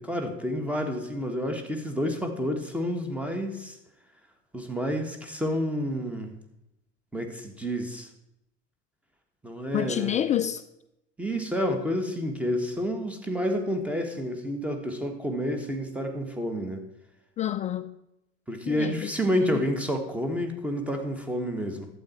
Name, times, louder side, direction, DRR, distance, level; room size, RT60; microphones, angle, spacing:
voice 1, 0.0-3.8 4.5-6.3 7.1-8.1 9.4-10.2 11.2-16.8 18.5-21.9, equal, 5° right, 1.7 m, -29 dB
voice 2, 9.7-10.6 17.4-18.0 18.6-19.1 19.5-19.6, left 11 dB, 20° left, 0.3 m, -28 dB
11.5 x 8.5 x 4.5 m
figure-of-eight pair, 80°, 35 cm